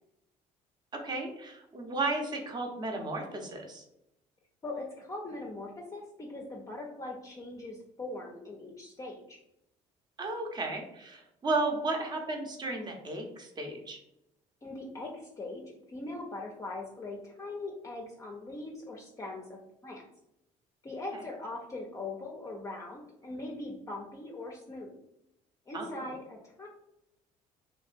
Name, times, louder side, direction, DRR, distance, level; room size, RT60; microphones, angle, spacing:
voice 1, 0.9-3.8 10.2-14.0 21.1-21.2 25.7-26.1, right 2 dB, 30° right, 2 dB, 0.7 m, -34 dB
voice 2, 4.6-9.4 14.6-19.6 19.8-20.0 20.8-24.9 25.7-26.7, left 2 dB, 20° left, -1 dB, 0.5 m, -41 dB
3.1 x 2.6 x 2.5 m, 0.84 s
supercardioid pair, 90°, 15 cm